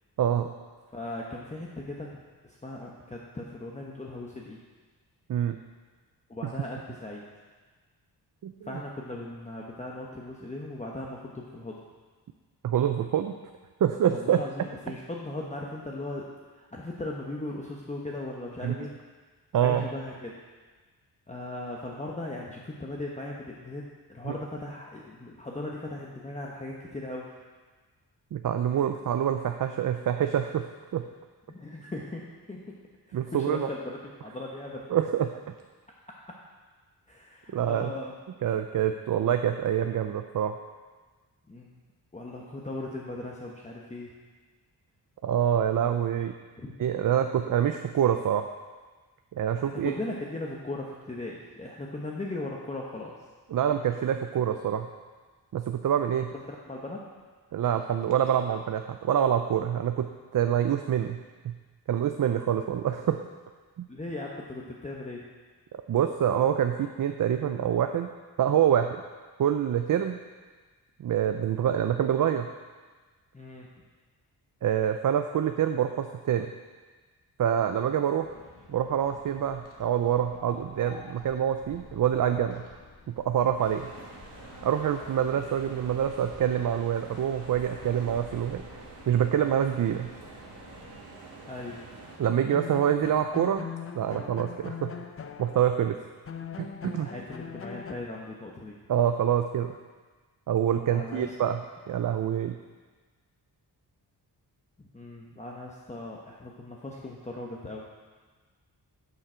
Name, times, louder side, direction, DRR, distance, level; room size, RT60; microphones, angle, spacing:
voice 1, 0.9-2.1 2.4-4.6 6.3-7.2 8.6-11.8 14.1-16.3 16.6-18.9 19.6-20.3 21.3-27.3 31.5-32.2 32.5-32.8 33.1-34.9 37.1-38.1 41.5-41.8 42.1-44.1 46.6-46.8 49.6-53.1 56.3-57.0 63.9-65.2 73.3-73.7 91.5-91.8 96.9-98.7 100.9-101.3 104.8-107.9, left 2 dB, 15° left, -3 dB, 0.9 m, -38 dB
voice 2, 8.4-8.8 12.6-13.4 13.8-14.4 18.6-18.7 19.5-19.9 24.3-24.4 28.3-30.7 30.9-31.0 33.1-33.7 34.9-35.3 37.5-37.9 38.4-40.6 45.2-46.3 46.8-48.4 49.4-49.9 53.5-54.9 55.5-56.3 57.5-61.2 61.4-61.5 61.9-63.2 63.8-63.9 65.9-68.1 68.4-69.0 69.4-70.2 71.0-72.5 74.6-76.5 77.4-78.3 78.7-82.6 83.1-83.9 84.6-88.6 89.1-90.1 92.2-93.7 93.9-94.9 95.4-96.0 96.6-97.1 98.9-99.8 100.5-102.6, right 9 dB, 55° right, 7 dB, 0.5 m, -26 dB
sound 1, 78.2-91.0, left 4 dB, 50° left, 1.4 m, -51 dB
sound 2, 83.6-92.2, right 3 dB, 90° right, 1.8 m, -47 dB
sound 3, 92.2-95.9 96.3-98.0, left 7 dB, 35° left, 0.5 m, -40 dB
11.5 x 6.3 x 4.4 m, 1.4 s
wide cardioid pair, 110°, 40 cm